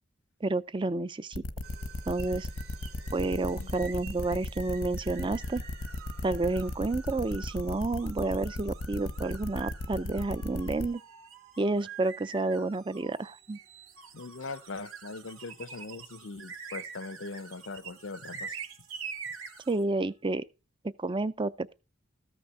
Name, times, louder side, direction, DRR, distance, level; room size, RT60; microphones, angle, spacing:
voice 1, 0.4-1.4 2.1-2.5 3.1-5.6 6.2-11.0 11.6-13.6 19.7-20.4 21.0-21.7, right 2 dB, 25° right, 0.5 m, -30 dB
sound 1, 1.3-10.9, left 2 dB, 90° left, 1.1 m, -36 dB
sound 2, 1.6-20.2, right 8 dB, 50° right, 2.4 m, -59 dB
sound 3, 2.2-19.9, right 6 dB, 85° right, 2.0 m, -46 dB
voice 2, 3.3-3.7 14.1-18.6, left 3 dB, 65° left, 0.6 m, -41 dB
14.0 x 6.0 x 5.4 m
head